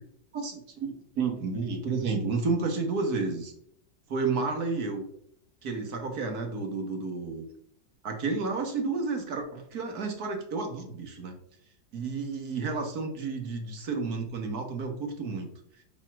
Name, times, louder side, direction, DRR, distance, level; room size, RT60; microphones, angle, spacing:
voice 1, 0.3-3.5 4.1-5.1 5.6-7.4 8.0-11.3 11.9-15.5, right 4 dB, 55° right, 4 dB, 1.8 m, -31 dB
6.7 x 4.6 x 6.0 m, 0.68 s
omnidirectional pair, 2.0 m